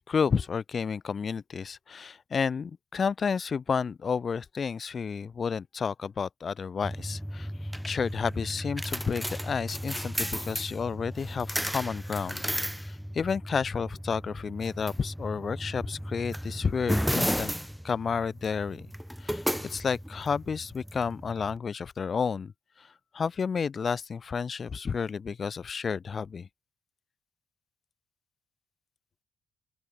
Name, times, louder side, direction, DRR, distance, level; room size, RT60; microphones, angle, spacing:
voice 1, 0.1-7.5 7.8-12.4 12.8-17.5 17.8-18.9 19.2-22.5 22.8-22.9 23.1-26.5, left 6 dB, 45° left, 3.7 m, -31 dB
sound 1, 6.8-21.6, equal, ahead, 3.3 m, -34 dB
open air
cardioid pair, 90°, 0 cm